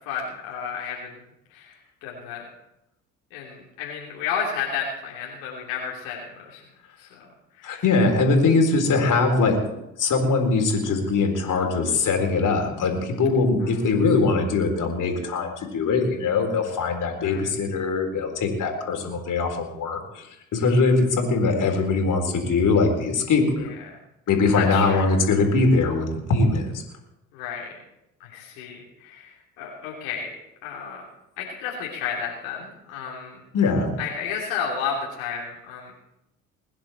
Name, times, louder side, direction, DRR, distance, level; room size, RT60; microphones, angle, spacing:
voice 1, 0.0-1.2 1.5-2.4 3.3-6.6 7.0-7.2 7.5-7.8 13.6-13.9 17.2-17.5 23.6-23.9 24.5-25.1 27.3-27.8 28.2-30.3 30.6-31.0 31.4-33.4 34.0-35.9, left 6 dB, 80° left, -3 dB, 3.1 m, -32 dB
voice 2, 7.6-9.6 10.0-20.3 20.5-23.7 24.3-26.8 33.5-33.9, left 3 dB, 55° left, 3 dB, 4.1 m, -22 dB
21.5 x 10.5 x 4.5 m, 0.85 s
hypercardioid pair, 60°, 38 cm